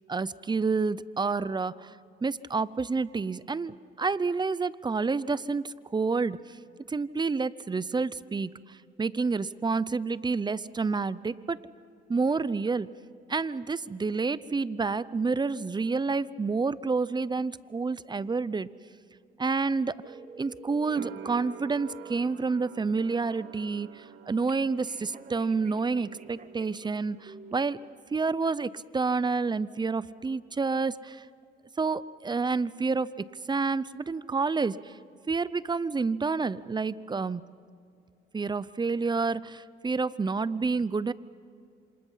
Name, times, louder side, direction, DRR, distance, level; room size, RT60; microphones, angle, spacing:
voice 1, 0.1-6.6 6.9-11.6 12.1-12.9 13.3-18.7 19.4-20.0 20.4-27.8 28.1-31.3 31.8-35.0 35.3-37.4 38.3-41.1, right 4 dB, 20° right, 18 dB, 0.7 m, -29 dB
sound 1, 20.0-22.3 24.5-26.9 27.3-27.5, right 5 dB, 40° right, 1.9 m, -48 dB
sound 2, 20.9-27.8 28.0-28.9, right 8 dB, 70° right, 1.4 m, -48 dB
28.0 x 26.0 x 5.7 m, 2.4 s
cardioid pair, 90°, 20 cm